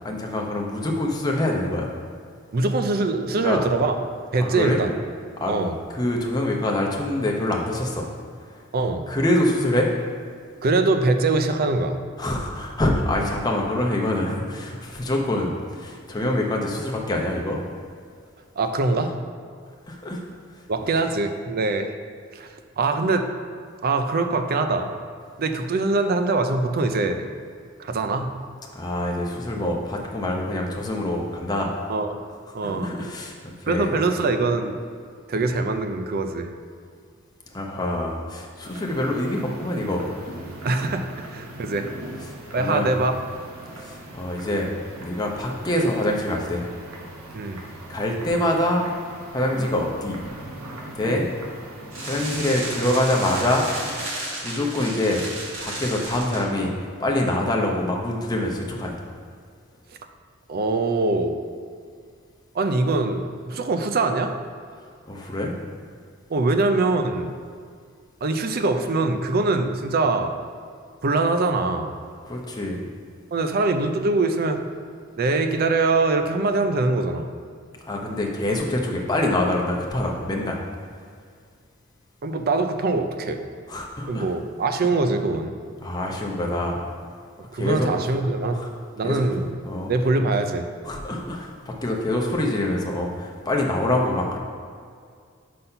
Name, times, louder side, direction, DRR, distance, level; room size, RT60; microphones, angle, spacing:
voice 1, 0.0-1.9 3.4-3.6 4.4-4.8 5.4-5.5 5.9-8.1 8.4-8.6 9.1-9.9 12.2-17.6 19.9-20.2 28.7-31.7 32.6-33.9 37.5-40.1 42.5-42.9 43.8-44.7 45.0-46.6 47.9-48.9 49.3-50.2 50.9-51.3 52.0-53.7 54.4-55.2 55.6-56.7 57.0-59.0 65.1-65.5 72.2-72.8 77.8-80.6 83.7-84.3 85.8-86.8 87.5-87.9 88.5-88.7 89.0-89.2 89.6-89.9 90.8-94.4, left 1 dB, 20° left, -1 dB, 0.8 m, -25 dB
voice 2, 2.5-3.9 4.3-4.9 5.5-5.7 8.7-9.0 10.6-12.0 18.6-19.2 20.7-22.0 22.3-22.5 22.8-23.3 23.8-24.9 25.4-27.2 27.8-28.3 31.9-32.2 32.5-32.9 33.7-34.8 35.3-36.5 40.6-41.0 41.3-41.9 42.5-43.1 47.3-47.6 51.0-51.3 60.5-61.4 62.5-64.3 66.3-67.4 68.2-70.4 71.0-71.9 73.3-74.6 75.2-77.3 82.2-83.4 84.1-85.5 87.5-88.5 89.0-89.6 89.9-90.7, right 3 dB, 45° right, 7 dB, 0.5 m, -23 dB
sound 1, 38.6-54.0, right 1 dB, 85° right, 1.1 m, -40 dB
sound 2, 51.9-56.4, right 1 dB, 60° right, 1.5 m, -33 dB
5.6 x 4.2 x 5.5 m, 2.1 s
head